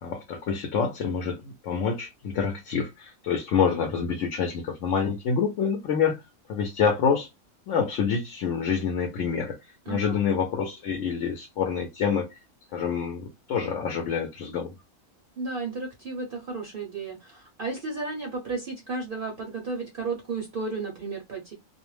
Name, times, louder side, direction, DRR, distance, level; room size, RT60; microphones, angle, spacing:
voice 1, 0.0-6.2 6.5-7.3 7.7-9.6 9.9-12.3 12.7-14.7, left 6 dB, 70° left, 0.9 m, -27 dB
voice 2, 9.9-10.2 15.4-21.5, right 3 dB, 55° right, 0.6 m, -33 dB
2.4 x 2.1 x 3.1 m
omnidirectional pair, 1.4 m